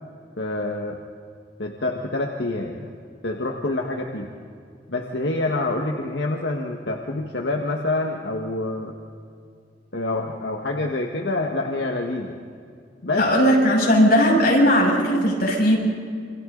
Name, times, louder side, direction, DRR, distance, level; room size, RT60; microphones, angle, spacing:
voice 1, 0.4-1.0 1.6-2.9 3.2-4.3 4.9-8.9 9.9-12.4 13.0-13.3, left 2 dB, 80° left, 1 dB, 1.6 m, -27 dB
voice 2, 13.2-15.8, equal, 60° left, -2 dB, 6.6 m, -17 dB
28.5 x 25.0 x 4.0 m, 2.3 s
head